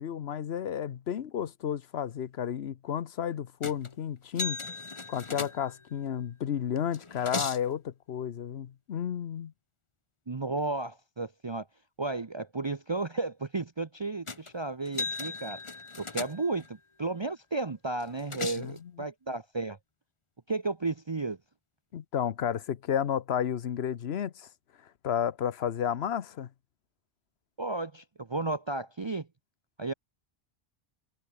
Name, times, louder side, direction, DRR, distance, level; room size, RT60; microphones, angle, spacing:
voice 1, 0.0-4.6 5.1-9.5 18.6-18.9 21.9-24.5 25.0-26.5, left 9 dB, 90° left, 1.1 m, -32 dB
sound 1, 3.6-4.0 4.4-6.0 6.8-7.7 14.3-14.5 14.9-16.7 18.0-18.8, left 3 dB, 30° left, 1.2 m, -37 dB
voice 2, 10.3-11.7 12.0-15.6 16.0-19.8 20.5-21.4 27.6-29.3 29.8-29.9, right 3 dB, 30° right, 0.8 m, -33 dB
omnidirectional pair, 1.0 m